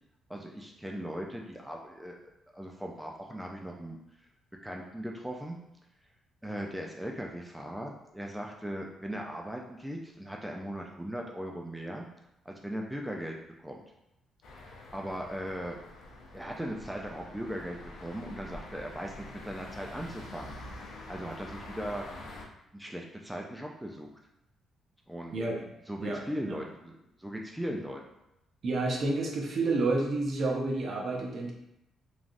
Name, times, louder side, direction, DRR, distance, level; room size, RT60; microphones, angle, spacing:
voice 1, 0.3-4.0 4.6-5.6 6.4-12.1 12.5-13.8 14.9-15.8 16.3-20.6 21.1-22.3 22.7-24.1 25.1-25.4 25.9-28.0, equal, 5° right, 0 dB, 0.3 m, -38 dB
sound 1, 14.4-22.4, left 2 dB, 75° left, 0.5 m, -46 dB
voice 2, 26.0-26.6 28.6-31.5, right 2 dB, 55° right, 0 dB, 0.6 m, -30 dB
3.2 x 2.4 x 2.5 m, 0.85 s
cardioid pair, 90°, 0 cm